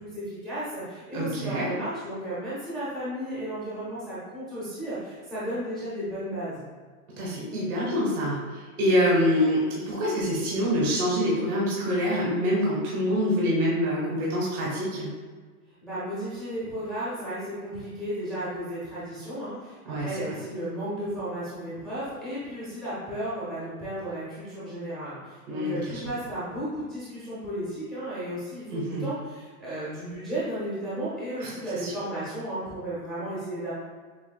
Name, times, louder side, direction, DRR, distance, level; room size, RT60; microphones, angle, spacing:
voice 1, 0.0-6.7 15.8-33.7, right 1 dB, ahead, -12 dB, 0.7 m, -34 dB
voice 2, 1.1-1.7 7.1-15.1 19.9-20.4 25.5-26.0 28.7-29.1 31.4-31.5 31.8-31.9, equal, 90° right, -5 dB, 1.5 m, -26 dB
7.1 x 2.7 x 2.2 m, 1.5 s
supercardioid pair, 175°, 43 cm